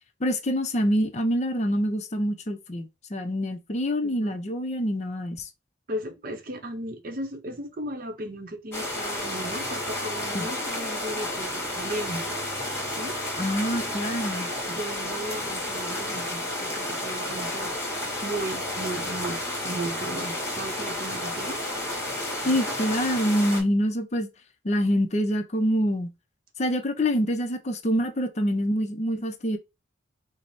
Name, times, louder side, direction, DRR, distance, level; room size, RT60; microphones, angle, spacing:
voice 1, 0.2-5.5 10.3-10.5 13.4-14.5 22.4-24.3 24.6-26.1 26.6-29.6, equal, 35° left, 0.5 m, -26 dB
voice 2, 4.0-4.4 5.9-12.4 12.9-13.2 14.7-17.9 18.2-21.6 22.4-22.6, right 1 dB, 45° right, 0.7 m, -36 dB
sound 1, 8.7-23.6, left 1 dB, 15° left, 1.3 m, -31 dB
4.7 x 2.0 x 4.0 m
head